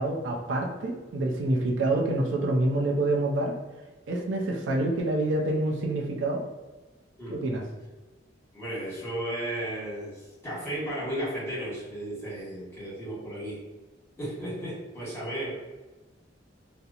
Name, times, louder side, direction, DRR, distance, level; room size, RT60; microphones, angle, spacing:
voice 1, 0.0-3.5 4.1-6.4 7.3-7.6, right 2 dB, 80° right, 0 dB, 0.4 m, -27 dB
voice 2, 8.5-13.6 14.2-15.5, right 1 dB, 15° left, -8 dB, 1.1 m, -34 dB
2.8 x 2.0 x 2.4 m, 1.2 s
head